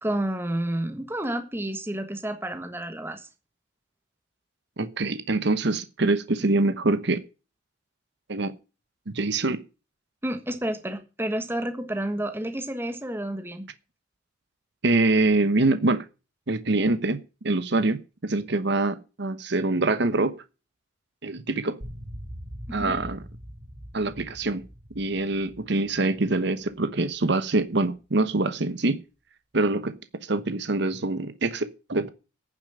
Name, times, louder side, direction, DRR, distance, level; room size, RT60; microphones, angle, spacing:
voice 1, 0.0-3.3 10.2-13.7 22.7-23.0, right 1 dB, 10° right, 1.4 m, -30 dB
voice 2, 4.8-7.2 8.3-8.5 9.1-9.6 14.8-16.0 16.5-20.4 21.2-21.8 22.7-23.2 23.9-24.7 24.9-29.0 29.5-30.0 30.3-32.1, right 2 dB, 65° right, 1.0 m, -24 dB
sound 1, 21.8-27.2, equal, 45° right, 2.8 m, -42 dB
10.0 x 7.2 x 8.8 m
head